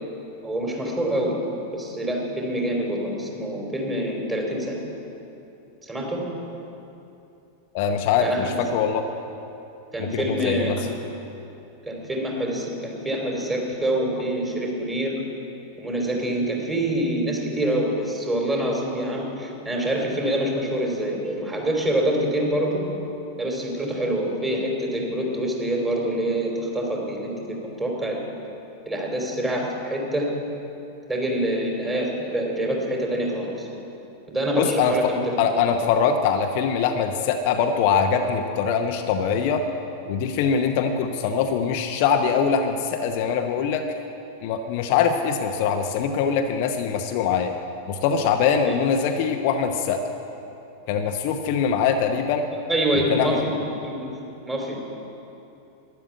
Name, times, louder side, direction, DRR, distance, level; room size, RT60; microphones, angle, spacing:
voice 1, 0.4-1.4 1.7-4.8 5.8-6.2 8.2-8.6 9.9-10.9 11.9-15.2 15.8-22.8 23.4-28.2 28.8-30.3 31.1-33.7 34.3-35.8 48.6-48.7 52.7-53.5 53.8-54.2 54.4-54.8, right 1 dB, 15° right, -1 dB, 3.3 m, -26 dB
voice 2, 7.7-9.0 10.0-10.8 34.6-35.1 35.4-39.7 40.1-43.9 44.4-47.5 47.9-50.0 50.9-52.5 53.1-53.4, left 6 dB, 45° left, 5 dB, 0.8 m, -23 dB
12.5 x 10.5 x 8.4 m, 2.9 s
figure-of-eight pair, 90°, 0 cm